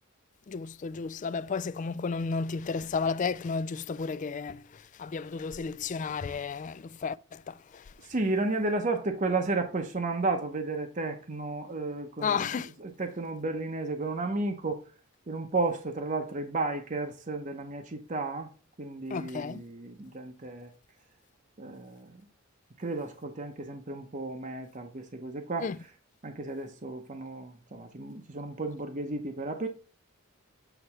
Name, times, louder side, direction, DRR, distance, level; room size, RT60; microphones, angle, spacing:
voice 1, 0.5-7.8 12.2-12.7 19.1-19.6 25.6-25.8, left 5 dB, 35° left, 0.3 m, -33 dB
voice 2, 8.0-12.5 12.8-14.8 15.3-18.5 18.8-20.7 21.6-22.2 22.8-25.7 26.2-29.7, right 3 dB, 35° right, 0.8 m, -33 dB
8.0 x 3.3 x 5.7 m
head